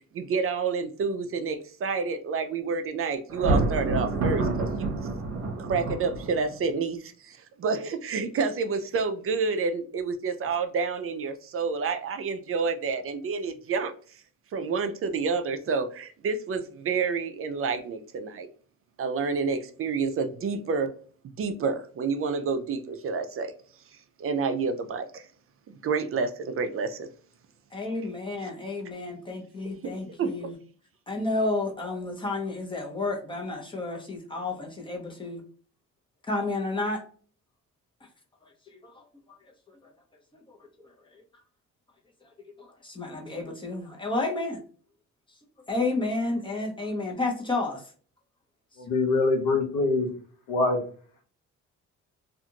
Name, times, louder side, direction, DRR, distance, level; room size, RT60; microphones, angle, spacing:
voice 1, 0.1-4.9 5.6-13.9 14.5-18.5 19.0-20.9 21.4-23.5 24.2-25.3 25.8-27.1 30.2-30.3, right 5 dB, 45° right, 8 dB, 0.5 m, -29 dB
Thunder, 3.3-6.6, right 3 dB, 65° right, 0.9 m, -28 dB
voice 2, 27.7-30.5 31.1-35.4 36.3-37.0 38.7-39.0 40.3-40.6 42.6-44.6 45.7-47.8, left 2 dB, 15° left, 0 dB, 0.9 m, -31 dB
voice 3, 48.8-50.1 50.5-50.8, left 3 dB, 90° left, 2 dB, 0.9 m, -24 dB
2.5 x 2.4 x 2.8 m, 0.43 s
cardioid pair, 90°, 30 cm